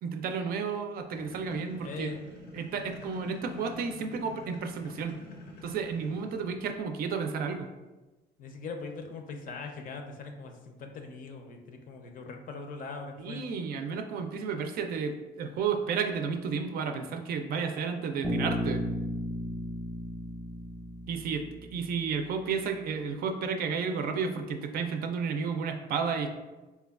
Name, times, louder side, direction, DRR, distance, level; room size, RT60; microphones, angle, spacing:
voice 1, 0.0-2.1 2.5-5.2 5.6-7.7 13.2-18.8 21.1-21.5 21.7-26.3, right 5 dB, 60° right, 6 dB, 0.4 m, -32 dB
sound 1, 1.1-6.8, left 3 dB, 85° left, 0.7 m, -47 dB
voice 2, 1.8-2.3 8.4-13.4, left 4 dB, 55° left, 4 dB, 0.5 m, -41 dB
Bass guitar, 18.2-22.1, left 1 dB, 5° right, 0.6 m, -34 dB
4.4 x 2.2 x 2.3 m, 1.1 s
cardioid pair, 110°, 17 cm